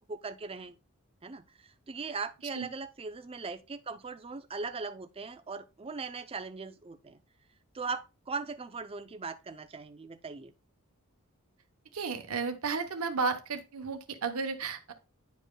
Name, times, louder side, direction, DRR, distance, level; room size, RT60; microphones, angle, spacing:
voice 1, 0.1-0.8 1.2-7.2 7.7-10.5, right 4 dB, 25° right, 0.5 m, -39 dB
voice 2, 11.9-14.9, right 5 dB, 80° right, 0.9 m, -33 dB
10.0 x 5.2 x 2.2 m
head